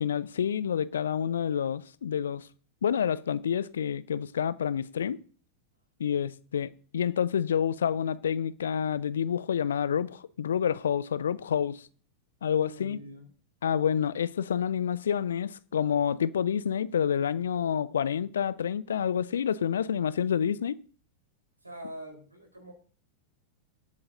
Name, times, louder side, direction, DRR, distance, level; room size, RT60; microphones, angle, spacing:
voice 1, 0.0-2.5 2.8-5.2 6.0-11.9 12.4-13.0 13.6-20.8, left 8 dB, 65° left, 0.5 m, -28 dB
voice 2, 12.6-13.3 21.6-22.7, equal, 85° right, 3.9 m, -44 dB
23.0 x 8.7 x 2.6 m
figure-of-eight pair, 90°, 0 cm